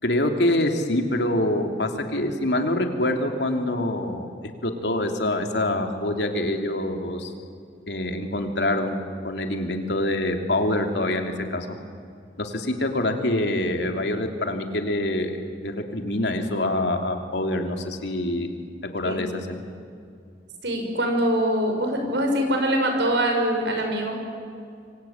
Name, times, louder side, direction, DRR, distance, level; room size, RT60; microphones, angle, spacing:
voice 1, 0.0-4.3 4.6-7.3 7.9-9.0 9.2-11.8 12.4-18.5 18.9-19.6, left 1 dB, 75° left, 4 dB, 3.0 m, -25 dB
voice 2, 20.6-24.2, right 1 dB, 85° right, 4 dB, 6.0 m, -23 dB
26.5 x 23.5 x 8.9 m, 2.3 s
head